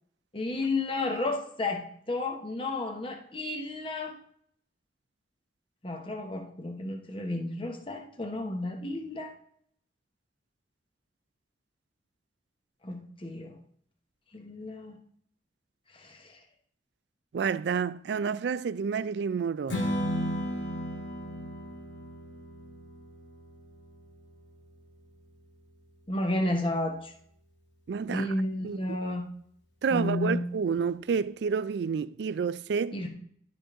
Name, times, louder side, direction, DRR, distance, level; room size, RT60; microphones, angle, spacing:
voice 1, 0.3-4.2 5.8-9.3 12.8-13.6 14.3-14.9 15.9-16.4 26.1-27.1 28.1-29.3 29.9-30.5 32.9-33.1, left 2 dB, 30° left, 0.9 m, -32 dB
voice 2, 17.3-19.8 27.9-28.3 28.6-29.0 29.8-33.0, right 6 dB, 65° right, 0.3 m, -29 dB
Strum, 19.7-26.0, equal, 90° left, 1.8 m, -36 dB
11.5 x 5.2 x 3.6 m
head